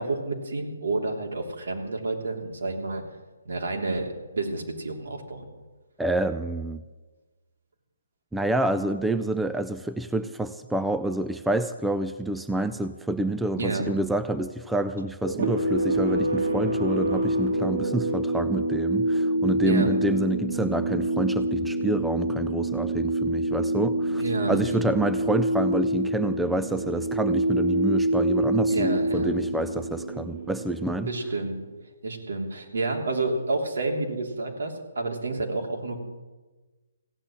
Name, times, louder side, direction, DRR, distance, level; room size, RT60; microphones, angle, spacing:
voice 1, 0.0-3.0 3.4-4.1 4.3-5.5 13.6-13.9 19.6-19.9 24.2-24.6 28.7-29.3 31.1-31.6 32.0-36.0, right 3 dB, 75° right, 2 dB, 3.1 m, -29 dB
voice 2, 6.0-6.8 8.3-24.2 24.5-31.1, right 2 dB, 5° right, 10 dB, 0.4 m, -28 dB
sound 1, 15.2-31.5, right 1 dB, 55° right, 2.5 m, -26 dB
16.0 x 8.0 x 8.8 m, 1.2 s
hypercardioid pair, 155°, 0 cm